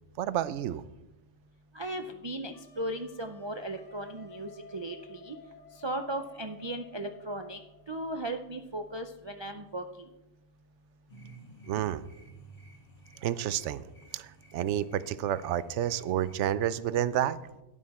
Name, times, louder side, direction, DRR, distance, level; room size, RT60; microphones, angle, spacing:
voice 1, 0.2-0.8 11.7-12.0 13.2-13.9 14.1-17.4, right 11 dB, 80° right, 16 dB, 0.9 m, -30 dB
voice 2, 1.7-5.4 5.8-7.6 7.9-9.8, right 1 dB, 35° right, 5 dB, 0.4 m, -36 dB
Wind instrument woodwind instrument, 2.5-8.0, left 3 dB, 85° left, 1.6 m, -54 dB
sound 1, 11.1-16.5, right 2 dB, 35° left, 1.7 m, -54 dB
12.5 x 9.9 x 4.2 m, 0.96 s
omnidirectional pair, 1.2 m